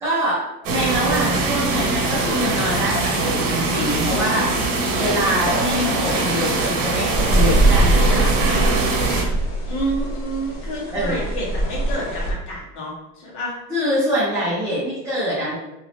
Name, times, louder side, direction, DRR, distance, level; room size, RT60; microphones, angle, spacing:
voice 1, 0.0-8.6 10.9-11.3 13.7-15.6, equal, 5° right, -10 dB, 0.4 m, -24 dB
sound 1, 0.6-9.2, right 3 dB, 55° right, 1.0 m, -22 dB
sound 2, 7.1-12.3, right 1 dB, 40° left, 1.0 m, -21 dB
voice 2, 9.7-13.5, right 1 dB, 75° left, -4 dB, 1.5 m, -29 dB
2.9 x 2.6 x 3.3 m, 0.96 s
cardioid pair, 165°, 46 cm